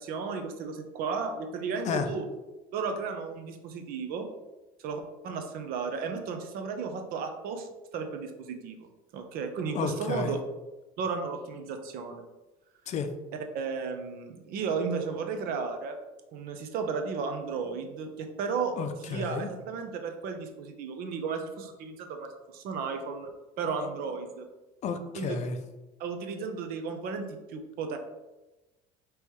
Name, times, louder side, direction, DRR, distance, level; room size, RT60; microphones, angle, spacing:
voice 1, 0.0-2.3 2.7-4.3 4.8-7.7 7.9-10.4 11.0-12.2 13.5-16.0 16.3-18.8 19.1-23.3 23.6-24.5 25.1-25.4 26.0-28.0, right 5 dB, 70° right, 6 dB, 0.7 m, -34 dB
voice 2, 9.7-10.3 12.9-13.1 18.8-19.5 24.8-25.6, left 5 dB, 50° left, 8 dB, 0.5 m, -31 dB
5.2 x 3.1 x 3.1 m, 1.1 s
cardioid pair, 115°, 16 cm